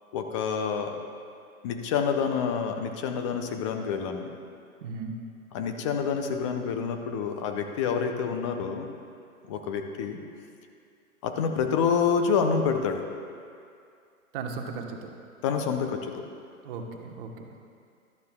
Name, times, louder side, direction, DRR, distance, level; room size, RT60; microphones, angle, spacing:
voice 1, 0.1-1.0 1.6-4.3 5.5-8.9 9.5-10.2 11.2-13.1 15.4-16.3, left 6 dB, 20° left, 5 dB, 0.5 m, -27 dB
voice 2, 4.8-5.1 14.3-15.1 16.6-17.5, right 4 dB, 40° right, 3 dB, 1.2 m, -36 dB
15.5 x 12.0 x 2.3 m, 2.4 s
hypercardioid pair, 130°, 43 cm